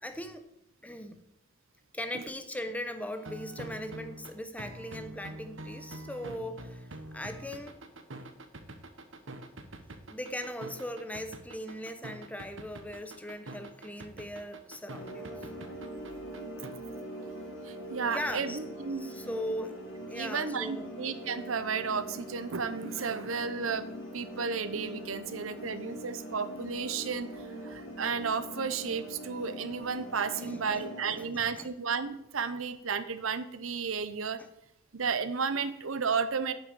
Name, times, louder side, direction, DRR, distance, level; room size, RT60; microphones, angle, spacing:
voice 1, 0.0-0.4 0.8-1.2 1.9-7.8 10.1-15.3 18.0-18.6 19.0-19.8 20.1-20.9 30.4-30.8 31.1-31.7 34.4-34.5, left 1 dB, 5° left, 8 dB, 0.8 m, -39 dB
sound 1, 3.2-16.7, right 1 dB, 70° right, 1.1 m, -45 dB
sound 2, 15.0-31.2, equal, 80° left, 2.9 m, -43 dB
voice 2, 17.6-19.3 20.2-34.4 34.9-36.5, right 5 dB, 85° right, 13 dB, 0.8 m, -33 dB
9.4 x 6.0 x 8.3 m, 0.80 s
head